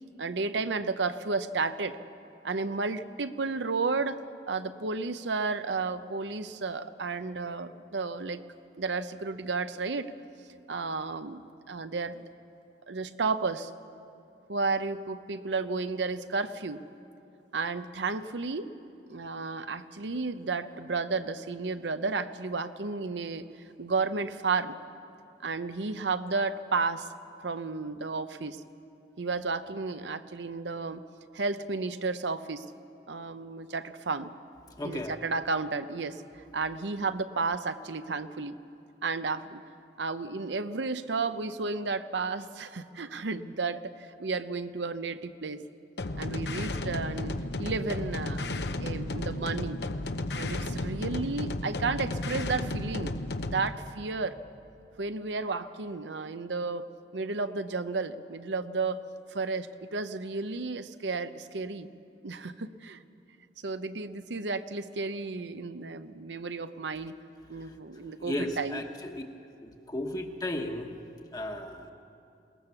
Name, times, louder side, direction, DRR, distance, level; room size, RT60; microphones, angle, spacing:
voice 1, 0.2-2.0 2.4-4.2 4.5-8.4 8.8-10.1 10.7-11.4 11.7-12.2 12.9-13.7 14.5-16.8 17.5-18.7 19.1-23.5 23.8-24.8 25.4-27.1 27.4-28.6 29.2-31.0 31.3-32.6 33.1-34.3 34.8-36.2 36.5-38.5 39.0-39.6 40.0-43.9 44.2-45.6 46.2-49.8 50.3-53.1 53.4-54.4 55.0-59.0 59.3-61.9 62.2-63.0 63.6-67.1 67.5-68.8, right 4 dB, 90° right, 11 dB, 0.8 m, -32 dB
voice 2, 34.8-35.2 68.2-69.2 69.6-70.9 71.3-71.9, left 1 dB, 20° left, 3 dB, 1.2 m, -35 dB
sound 1, 46.0-53.7, left 2 dB, 70° left, 0.9 m, -33 dB
22.0 x 18.5 x 7.1 m, 2.8 s
head